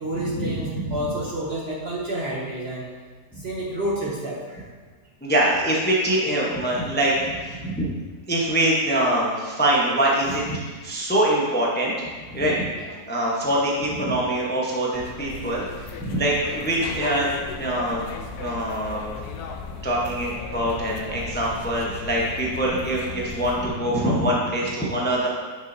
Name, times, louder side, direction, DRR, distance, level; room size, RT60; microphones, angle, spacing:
voice 1, 0.0-2.9 3.4-4.7 6.7-6.8 12.3-12.5 12.8-13.0, right 1 dB, 50° right, -3 dB, 0.8 m, -30 dB
voice 2, 5.2-7.9 8.3-12.0 12.3-12.7 13.1-17.3 17.6-18.0 18.4-19.1 19.8-25.3, right 1 dB, 10° left, -4 dB, 0.5 m, -24 dB
sound 1, 14.9-23.7, left 4 dB, 70° left, 1.1 m, -36 dB
8.9 x 5.9 x 2.7 m, 1.4 s
omnidirectional pair, 1.8 m